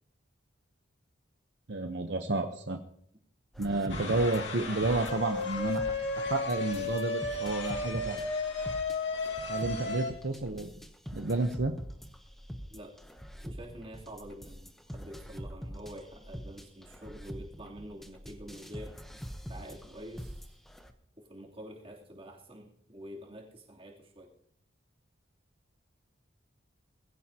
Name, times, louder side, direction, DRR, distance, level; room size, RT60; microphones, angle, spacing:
voice 1, 1.7-2.8 3.6-5.8 6.2-8.2 9.5-10.7 11.1-11.7, right 2 dB, 60° right, 5 dB, 0.9 m, -31 dB
sound 1, 3.5-20.9, equal, ahead, 0.9 m, -45 dB
sound 2, 3.9-10.1, left 3 dB, 65° left, 2.3 m, -34 dB
voice 2, 13.4-19.2 19.5-20.6 21.2-24.3, equal, 30° right, -2 dB, 3.1 m, -47 dB
20.0 x 15.5 x 2.9 m, 0.69 s
head